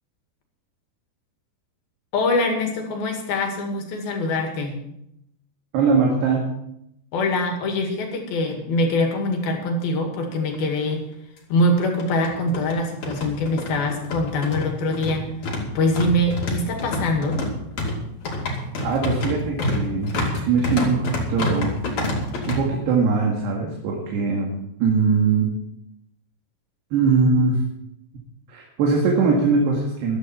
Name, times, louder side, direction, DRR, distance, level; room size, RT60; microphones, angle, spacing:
voice 1, 2.1-4.8 7.1-11.0 11.5-15.3 15.8-17.4, left 1 dB, 65° left, 3 dB, 3.9 m, -23 dB
voice 2, 5.7-6.5 18.8-21.7 22.5-24.5 24.8-25.5 26.9-27.6 28.5-30.2, right 4 dB, 80° right, -1 dB, 4.1 m, -21 dB
sound 1, 10.5-10.6 10.9-11.0 11.8-22.6, left 2 dB, 45° left, 3.4 m, -27 dB
15.0 x 12.5 x 4.5 m, 0.79 s
omnidirectional pair, 4.7 m